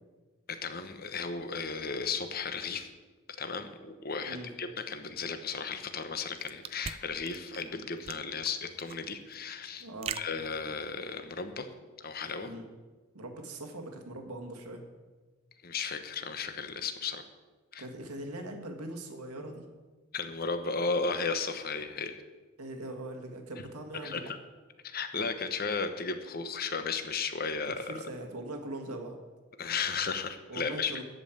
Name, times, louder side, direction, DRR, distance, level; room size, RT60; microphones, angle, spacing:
voice 1, 0.5-2.9 3.4-9.9 10.1-11.7 12.0-12.5 15.6-17.2 17.7-17.8 20.1-22.2 24.0-24.4 24.8-27.9 29.6-31.0, left 5 dB, 40° left, 8 dB, 1.0 m, -34 dB
sound 1, 6.0-11.2, right 7 dB, 25° right, 0.3 m, -43 dB
voice 2, 9.8-10.2 12.4-12.7 13.1-14.8 17.8-19.6 22.6-24.2 27.8-29.2 30.5-31.0, right 1 dB, 90° right, 3 dB, 1.9 m, -41 dB
13.5 x 5.5 x 9.1 m, 1.3 s
head